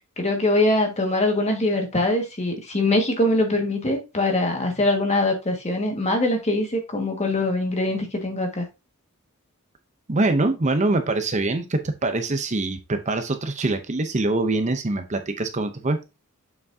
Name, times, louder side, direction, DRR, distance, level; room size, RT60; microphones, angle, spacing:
voice 1, 0.2-8.6, left 2 dB, 30° left, 1.8 m, -23 dB
voice 2, 10.1-16.0, right 2 dB, 35° right, 0.7 m, -24 dB
7.1 x 6.0 x 2.7 m
head